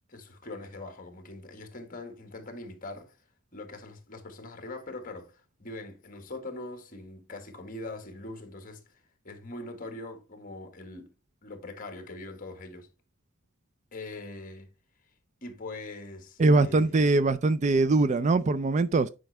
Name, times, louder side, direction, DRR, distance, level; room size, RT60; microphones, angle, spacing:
voice 1, 0.1-3.2 3.5-11.1 11.4-12.9 13.9-14.7 15.4-17.2, left 2 dB, 40° left, 1.6 m, -42 dB
voice 2, 16.4-19.1, right 3 dB, 35° right, 0.4 m, -22 dB
9.2 x 5.2 x 3.3 m
head